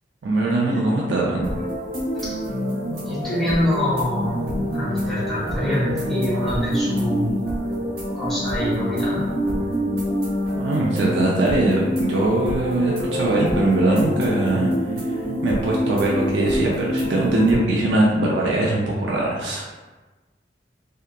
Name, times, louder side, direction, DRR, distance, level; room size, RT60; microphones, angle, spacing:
voice 1, 0.2-1.5 10.5-14.7 15.0-19.6, right 2 dB, 85° right, -3 dB, 0.4 m, -21 dB
sound 1, 1.4-17.6, equal, 60° right, 1.1 m, -26 dB
voice 2, 3.1-4.4 4.7-7.3 8.1-9.3, left 1 dB, ahead, -10 dB, 0.9 m, -25 dB
2.7 x 2.3 x 2.2 m, 1.2 s
head